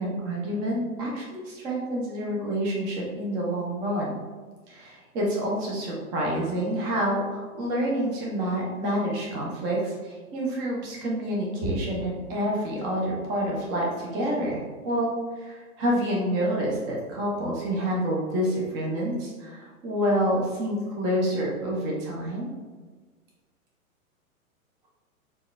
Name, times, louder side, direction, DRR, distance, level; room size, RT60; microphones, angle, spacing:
voice 1, 0.0-4.2 4.7-22.5, equal, 10° right, -3 dB, 0.3 m, -28 dB
6.2 x 2.2 x 3.0 m, 1.4 s
hypercardioid pair, 115°, 43 cm